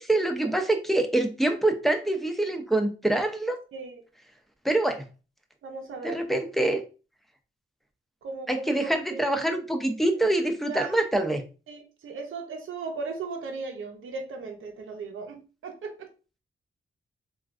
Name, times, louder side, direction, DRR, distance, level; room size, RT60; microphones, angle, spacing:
voice 1, 0.0-3.6 4.6-5.0 6.0-6.8 8.5-11.4, right 1 dB, ahead, 4 dB, 0.5 m, -25 dB
voice 2, 3.7-4.0 5.6-6.2 8.2-9.8 10.0-10.2 10.7-10.9 11.7-16.1, right 4 dB, 75° right, 3 dB, 0.6 m, -37 dB
3.1 x 2.4 x 2.4 m, 0.33 s
cardioid pair, 65°, 21 cm